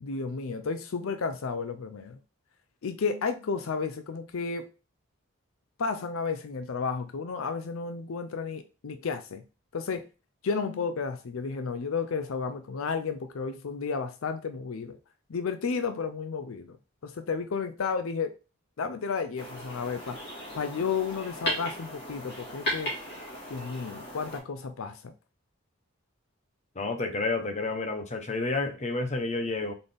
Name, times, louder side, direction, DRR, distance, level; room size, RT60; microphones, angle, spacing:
voice 1, 0.0-2.2 2.8-4.7 5.8-9.4 9.7-10.1 10.4-15.0 15.3-16.8 17.0-18.4 18.8-20.2 20.5-22.9 23.5-25.1, left 5 dB, 75° left, 0.5 m, -32 dB
sound 1, 19.4-24.4, equal, 50° left, 2.0 m, -36 dB
voice 2, 26.8-29.7, left 3 dB, 35° left, 0.7 m, -30 dB
3.9 x 3.9 x 3.3 m
head